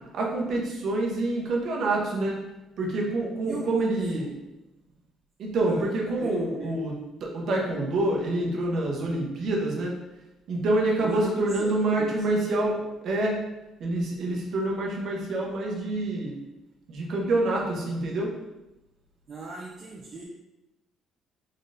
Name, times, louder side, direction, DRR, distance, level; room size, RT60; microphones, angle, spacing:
voice 1, 0.1-2.4 2.8-4.3 5.4-6.9 7.2-9.9 10.5-13.4 13.8-16.3 16.9-18.3, right 2 dB, 55° right, -1 dB, 0.9 m, -27 dB
voice 2, 3.4-4.3 5.7-5.9 6.2-6.7 11.0-12.2 19.3-20.2, right 3 dB, 35° right, -3 dB, 0.4 m, -37 dB
3.7 x 3.7 x 2.6 m, 0.99 s
cardioid pair, 150°, 0 cm